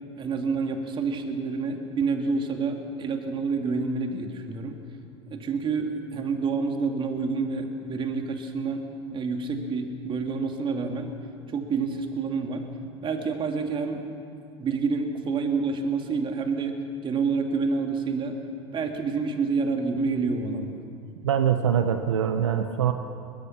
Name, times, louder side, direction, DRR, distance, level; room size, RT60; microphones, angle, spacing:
voice 1, 0.2-4.8 5.3-11.1 11.5-12.7 13.0-14.0 14.6-18.4 18.7-20.8, right 4 dB, 35° right, 4 dB, 2.7 m, -28 dB
voice 2, 21.2-22.9, right 9 dB, 80° right, 8 dB, 1.0 m, -23 dB
22.0 x 21.0 x 6.1 m, 2.5 s
hypercardioid pair, 85°, 15 cm